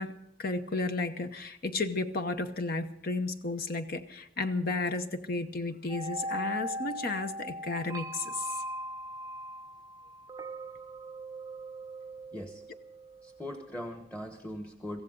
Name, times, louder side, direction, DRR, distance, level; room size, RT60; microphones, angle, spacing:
voice 1, 0.0-8.6, left 3 dB, 50° left, 8 dB, 0.9 m, -33 dB
sound 1, 5.9-13.9, right 1 dB, 20° right, 0.6 m, -40 dB
voice 2, 12.3-12.6 13.2-15.0, left 1 dB, 5° left, 4 dB, 1.1 m, -40 dB
24.0 x 15.5 x 3.9 m, 0.76 s
head